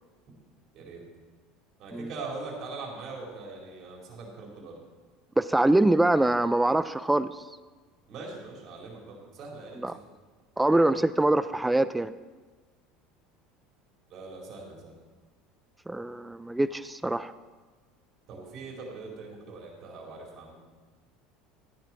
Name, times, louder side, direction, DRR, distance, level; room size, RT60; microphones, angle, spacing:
voice 1, 1.8-4.8 8.1-10.0 14.1-14.9 18.3-20.5, right 3 dB, 50° right, -2 dB, 4.7 m, -41 dB
voice 2, 5.4-7.3 9.8-10.0 10.6-12.1 15.9-17.3, right 1 dB, 10° right, 14 dB, 0.5 m, -24 dB
15.0 x 10.0 x 4.7 m, 1.4 s
supercardioid pair, 95°, 0 cm